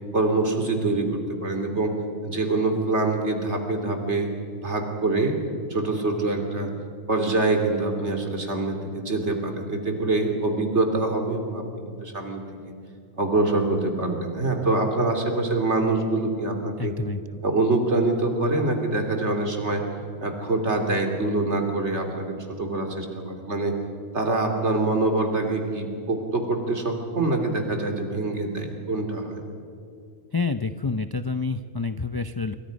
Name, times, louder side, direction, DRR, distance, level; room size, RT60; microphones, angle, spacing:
voice 1, 0.1-1.9 2.2-4.3 4.6-5.4 5.7-6.7 7.1-12.7 13.2-17.0 17.4-19.8 20.2-23.8 24.1-29.4, right 2 dB, 60° right, 4 dB, 3.2 m, -25 dB
voice 2, 16.8-17.4 30.3-32.6, left 4 dB, 30° left, 9 dB, 0.4 m, -28 dB
27.0 x 24.5 x 5.3 m, 2.5 s
omnidirectional pair, 1.3 m